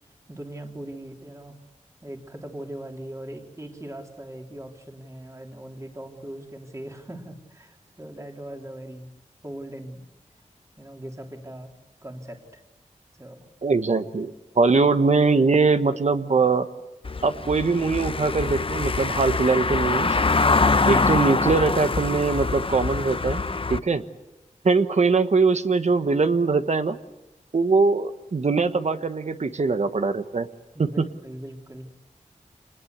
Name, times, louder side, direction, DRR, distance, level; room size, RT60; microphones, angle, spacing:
voice 1, 0.3-1.6 2.0-9.1 9.4-10.0 10.8-11.7 12.0-12.6 13.2-13.5 22.9-23.8 30.7-31.9, right 1 dB, 25° right, 2 dB, 3.4 m, -40 dB
voice 2, 13.6-16.7 17.2-20.2 20.9-23.4 23.7-24.0 24.6-27.0 27.5-30.5 30.8-31.1, right 4 dB, 60° right, 10 dB, 1.3 m, -22 dB
Car passing by / Engine, 17.0-23.8, left 3 dB, 45° left, 0.8 m, -24 dB
28.0 x 20.5 x 8.2 m, 0.96 s
wide cardioid pair, 95°, 13 cm